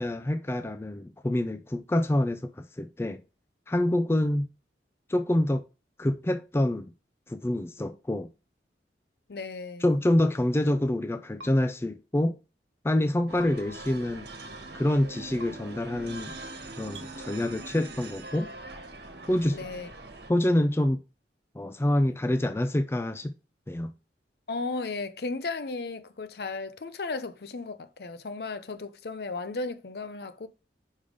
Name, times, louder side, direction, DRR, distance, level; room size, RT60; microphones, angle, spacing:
voice 1, 0.0-3.2 3.7-4.5 5.1-5.6 6.0-6.9 7.3-8.3 9.8-12.4 12.8-14.3 14.7-16.3 16.8-18.5 19.3-19.6 20.3-21.0 21.6-23.3 23.7-23.9, left 1 dB, 15° left, 0.4 m, -26 dB
voice 2, 9.3-9.9 19.5-19.9 24.5-30.5, left 3 dB, 60° left, 0.6 m, -35 dB
sound 1, 11.4-11.5 13.4-13.5 15.4-15.5 16.9-17.1, right 1 dB, 85° right, 1.3 m, -44 dB
sound 2, 13.3-20.3, right 2 dB, 65° right, 1.4 m, -42 dB
5.4 x 5.0 x 5.1 m
head